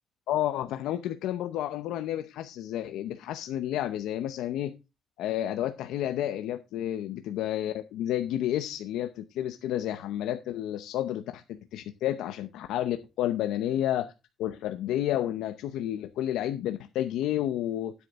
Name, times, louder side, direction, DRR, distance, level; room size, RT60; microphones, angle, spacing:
voice 1, 0.3-4.7 5.2-14.1 14.4-17.9, left 12 dB, 90° left, 8 dB, 0.7 m, -31 dB
9.7 x 8.0 x 3.6 m, 0.27 s
cardioid pair, 90°, 0 cm